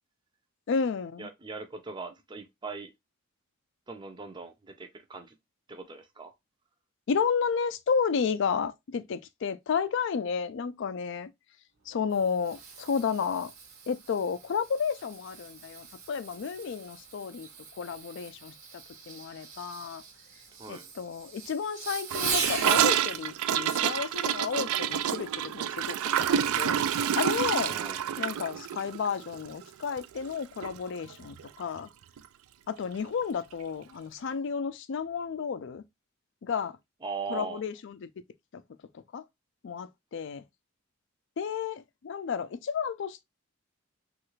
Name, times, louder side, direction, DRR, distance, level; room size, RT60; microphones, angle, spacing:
voice 1, 0.7-1.3 7.1-11.3 11.9-13.5 13.9-17.5 17.8-18.5 19.1-20.0 20.7-26.8 27.1-27.8 28.2-31.9 32.7-35.8 36.4-36.8 37.3-38.1 38.5-38.6 39.1-39.2 39.6-40.4 41.4-43.2, left 6 dB, 55° left, 0.3 m, -32 dB
voice 2, 1.2-2.9 3.9-5.4 5.7-6.3 20.6-20.9 27.7-28.0 37.0-37.6, right 4 dB, 20° right, 0.4 m, -40 dB
Fireworks, 11.8-22.8 24.8-25.1 25.7-25.8, right 5 dB, 65° right, 0.9 m, -39 dB
Gurgling / Toilet flush, 22.1-30.4 30.6-30.8 31.0-31.5 31.8-31.9 32.2-32.3 33.2-33.3, right 9 dB, 85° right, 0.3 m, -28 dB
3.2 x 2.4 x 3.0 m
head